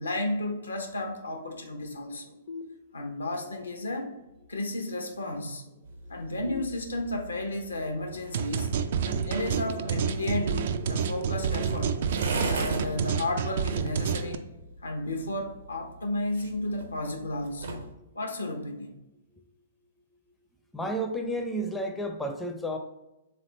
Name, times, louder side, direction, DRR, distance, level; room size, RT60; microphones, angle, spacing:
voice 1, 0.0-2.3 2.9-4.1 4.5-5.7 6.1-8.7 9.0-12.0 12.5-14.5 14.8-17.8 18.1-19.0, left 2 dB, 80° left, 4 dB, 0.8 m, -33 dB
sound 1, 2.5-3.4 6.5-7.5 10.5-11.5, left 4 dB, 50° left, 0.6 m, -44 dB
sound 2, 5.8-17.9, right 2 dB, 70° right, 0.8 m, -40 dB
sound 3, 8.3-14.3, right 6 dB, 55° right, 0.3 m, -29 dB
voice 2, 20.7-22.8, right 1 dB, 5° left, 3 dB, 0.5 m, -31 dB
3.7 x 3.3 x 4.1 m, 0.95 s
figure-of-eight pair, 115°, 0 cm